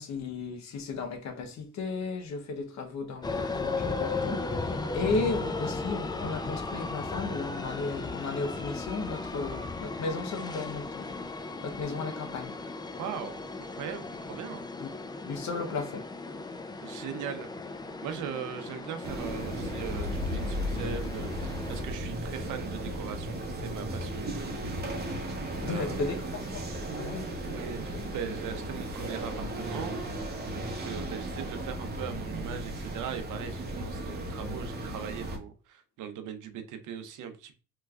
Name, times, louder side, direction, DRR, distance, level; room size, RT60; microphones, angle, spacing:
voice 1, 0.0-11.2 11.6-12.6 14.8-14.9 15.2-16.1 25.6-26.6 27.0-27.3, left 3 dB, 65° left, 0.8 m, -34 dB
sound 1, 3.2-21.8, left 3 dB, 15° left, 0.4 m, -36 dB
voice 2, 13.0-14.6 16.8-17.5 18.0-24.8 25.6-26.2 27.4-29.9 30.5-37.5, right 8 dB, 80° right, 0.6 m, -40 dB
sound 2, 19.0-35.4, right 1 dB, 35° right, 0.8 m, -35 dB
3.2 x 3.1 x 2.3 m
cardioid pair, 90°, 30 cm